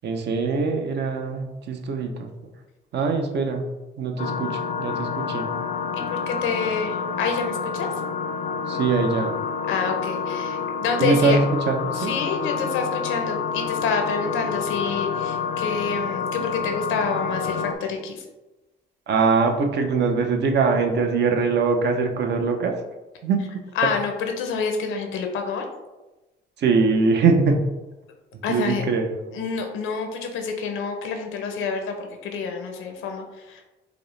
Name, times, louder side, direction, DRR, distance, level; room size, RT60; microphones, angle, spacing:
voice 1, 0.0-2.3 2.9-3.6 4.0-5.5 8.7-9.4 11.0-12.1 19.1-22.7 23.2-23.4 26.6-27.6 28.5-29.3, right 4 dB, 60° right, 4 dB, 0.6 m, -22 dB
sound 1, 4.2-17.7, left 6 dB, 40° left, 0.4 m, -28 dB
voice 2, 5.9-7.9 9.7-11.4 12.0-18.2 23.8-25.7 28.4-28.8 29.3-31.9 32.2-33.6, left 5 dB, 90° left, 4 dB, 0.7 m, -27 dB
4.9 x 2.1 x 3.1 m, 1.1 s
cardioid pair, 90°, 20 cm